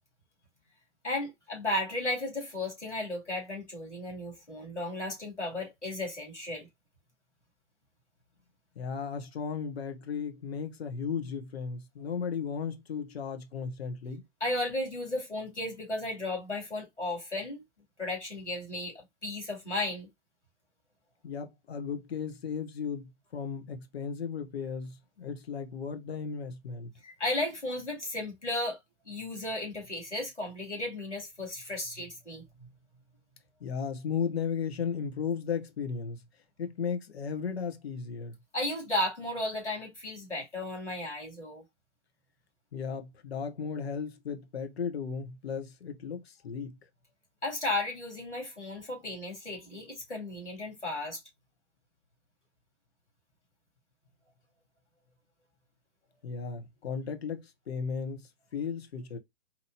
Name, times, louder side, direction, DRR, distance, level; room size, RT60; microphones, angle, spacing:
voice 1, 1.0-6.7 14.4-17.6 18.0-20.1 27.0-28.8 29.1-32.4 38.5-41.6 47.4-51.2, left 1 dB, 85° left, 2.5 m, -34 dB
voice 2, 8.8-14.2 21.2-26.9 33.6-36.2 36.6-38.3 42.7-46.8 56.2-59.2, left 6 dB, 65° left, 1.0 m, -35 dB
4.4 x 2.7 x 2.7 m
figure-of-eight pair, 115°, 34 cm